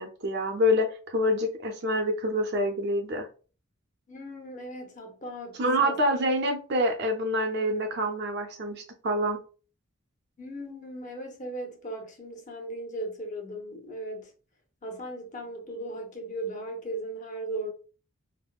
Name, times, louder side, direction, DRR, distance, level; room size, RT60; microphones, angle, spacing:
voice 1, 0.0-3.3 5.6-9.4, equal, 50° right, 0.5 m, -26 dB
voice 2, 4.1-6.0 10.4-14.3 14.8-17.7, right 1 dB, 35° left, 0.7 m, -37 dB
3.4 x 2.0 x 2.3 m
head